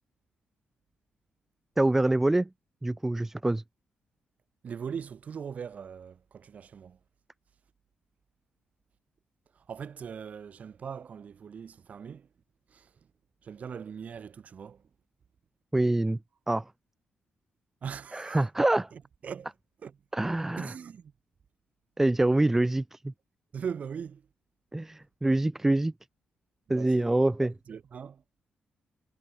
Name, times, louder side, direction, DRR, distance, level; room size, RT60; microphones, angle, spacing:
voice 1, 1.8-2.5 2.8-3.6 15.7-16.2 16.5-16.6 18.1-18.9 20.1-20.7 22.0-23.1 24.7-25.9 26.7-27.5, right 2 dB, 10° right, 0.9 m, -25 dB
voice 2, 4.6-7.0 9.7-12.3 12.7-12.9 13.4-14.8 17.8-18.4 18.9-19.5 19.8-20.0 20.6-21.1 23.5-24.2 26.7-27.1 27.4-28.2, right 7 dB, 50° right, 4.8 m, -40 dB
cardioid pair, 120°, 3 cm